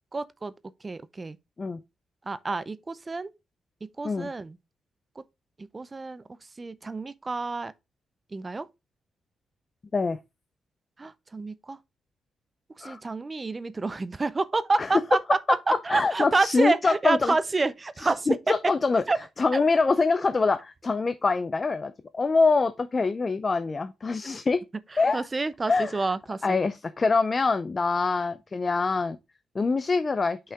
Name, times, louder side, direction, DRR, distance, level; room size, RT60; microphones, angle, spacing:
voice 1, 0.1-0.5 0.8-1.4 2.2-3.3 3.8-4.6 5.2-5.3 5.6-7.7 8.3-8.7 11.0-11.8 12.8-15.4 15.7-18.5 19.1-19.2 19.5-19.6 24.9-26.6, right 3 dB, 25° right, 0.5 m, -28 dB
voice 2, 15.9-17.3 18.3-19.0 19.4-24.6 25.0-25.3 25.7-25.9 26.4-29.2 29.5-30.4, left 4 dB, 35° left, 0.5 m, -24 dB
5.5 x 5.5 x 3.6 m
cardioid pair, 95°, 0 cm